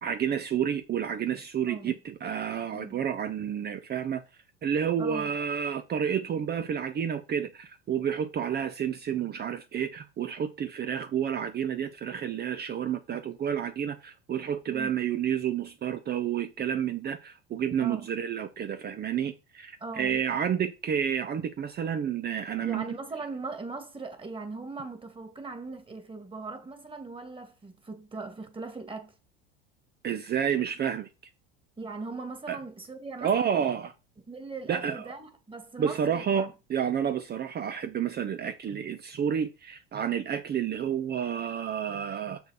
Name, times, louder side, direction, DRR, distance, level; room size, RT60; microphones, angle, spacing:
voice 1, 0.0-4.2 4.6-22.9 30.0-31.1 32.5-32.6 33.2-33.9 34.7-35.1 35.8-42.4, right 8 dB, 30° right, 0.8 m, -30 dB
voice 2, 5.0-5.3 14.7-15.0 17.8-18.1 19.8-20.2 22.6-29.1 31.8-33.7 34.3-36.5, right 3 dB, 15° right, 2.2 m, -39 dB
6.6 x 6.4 x 4.9 m
hypercardioid pair, 85°, 31 cm